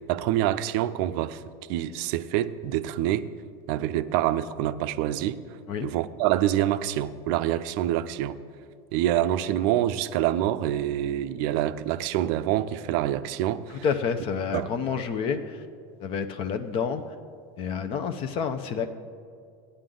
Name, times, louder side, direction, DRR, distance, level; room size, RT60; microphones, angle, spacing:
voice 1, 0.0-1.4 1.7-3.3 3.7-5.4 5.8-8.4 8.9-13.8 14.5-14.7, right 12 dB, 60° right, 13 dB, 0.5 m, -26 dB
voice 2, 13.7-15.6 16.0-17.0 17.6-18.9, left 6 dB, 45° left, 9 dB, 0.7 m, -29 dB
15.0 x 9.8 x 3.9 m, 2.3 s
supercardioid pair, 125°, 13 cm